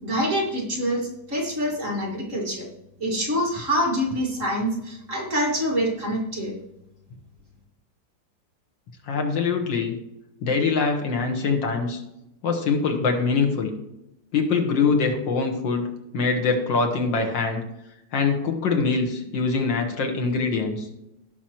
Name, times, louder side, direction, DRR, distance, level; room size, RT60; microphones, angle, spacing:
voice 1, 0.0-2.7 3.0-6.5, equal, 40° right, -3 dB, 2.5 m, -26 dB
voice 2, 9.0-9.9 10.4-12.0 12.4-13.7 14.3-15.9 16.1-17.6 18.1-20.9, left 4 dB, 75° left, 3 dB, 2.1 m, -23 dB
17.0 x 6.0 x 3.0 m, 0.87 s
omnidirectional pair, 2.1 m